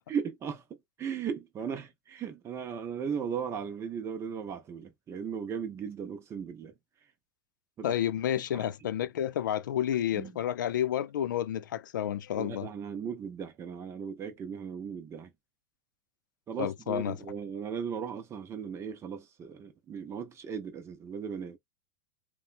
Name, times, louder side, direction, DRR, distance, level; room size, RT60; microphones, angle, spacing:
voice 1, 0.1-0.6 1.0-6.7 7.8-8.0 8.5-8.6 10.1-10.3 12.4-15.3 16.5-21.6, right 7 dB, 25° right, 0.7 m, -37 dB
voice 2, 7.8-12.7 16.6-17.2, left 10 dB, 85° left, 0.4 m, -30 dB
2.9 x 2.2 x 2.5 m
hypercardioid pair, 120°, 10 cm